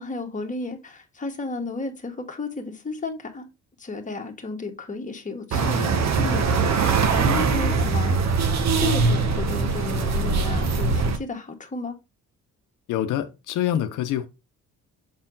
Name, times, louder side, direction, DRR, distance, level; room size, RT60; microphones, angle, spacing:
voice 1, 0.0-3.5 3.8-8.5 8.8-11.9, left 3 dB, 25° left, 1.6 m, -33 dB
sound 1, 5.5-11.2, right 4 dB, 60° right, 1.3 m, -22 dB
voice 2, 12.9-14.3, left 11 dB, 85° left, 0.7 m, -25 dB
6.7 x 4.3 x 3.9 m
cardioid pair, 90°, 30 cm